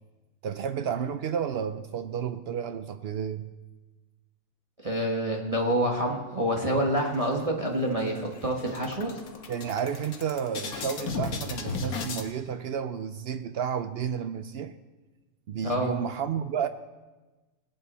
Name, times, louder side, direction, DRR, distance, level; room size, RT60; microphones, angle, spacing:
voice 1, 0.4-3.5 9.5-14.7 15.5-16.7, right 8 dB, 70° right, 0.6 m, -31 dB
voice 2, 4.8-9.1 15.6-15.9, right 1 dB, 25° right, 1.3 m, -27 dB
sound 1, 6.9-7.7 8.1-8.2 8.5-12.3, left 4 dB, 80° left, 1.6 m, -35 dB
19.0 x 8.7 x 4.1 m
omnidirectional pair, 1.6 m